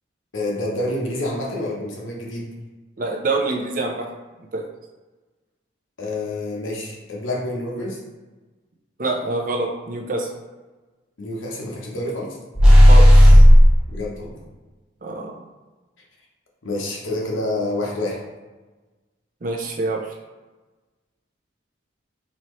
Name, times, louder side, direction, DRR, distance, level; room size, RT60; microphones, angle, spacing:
voice 1, 0.3-2.5 6.0-8.0 11.2-12.4 13.9-14.4 16.6-18.2, left 1 dB, 85° left, -2 dB, 1.0 m, -28 dB
voice 2, 3.0-4.1 4.5-4.6 9.0-10.3 12.9-13.4 15.0-15.3 19.4-20.1, right 2 dB, 45° right, 1 dB, 0.5 m, -26 dB
sound 1, 12.5-13.8, equal, 5° right, 0.8 m, -8 dB
4.1 x 2.9 x 3.1 m, 1.2 s
head